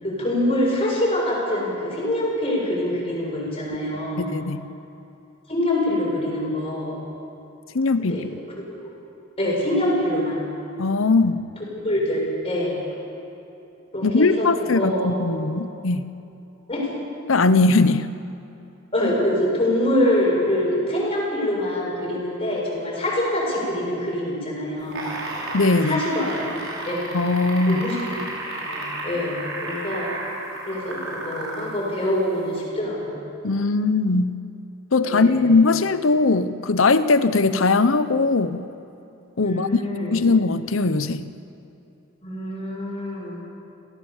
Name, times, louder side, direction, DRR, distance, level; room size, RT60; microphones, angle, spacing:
voice 1, 0.0-4.3 5.5-7.0 8.0-8.2 9.4-10.4 11.6-12.8 13.9-15.1 16.7-16.9 18.9-25.0 25.8-26.5 26.9-27.0 27.7-28.2 28.5-30.1 30.7-33.2 35.1-35.5 39.4-40.2 42.2-43.4, left 1 dB, 30° left, -4 dB, 7.6 m, -25 dB
voice 2, 4.2-4.7 7.7-8.2 10.8-11.4 14.0-16.1 17.3-18.1 25.5-26.0 27.1-27.8 33.4-34.4 34.9-38.7 39.4-39.8 40.1-41.3, left 3 dB, 75° left, 13 dB, 0.9 m, -20 dB
sound 1, 24.8-31.7 32.6-32.7, right 2 dB, 75° right, 5.6 m, -32 dB
27.5 x 17.0 x 7.3 m, 2.8 s
head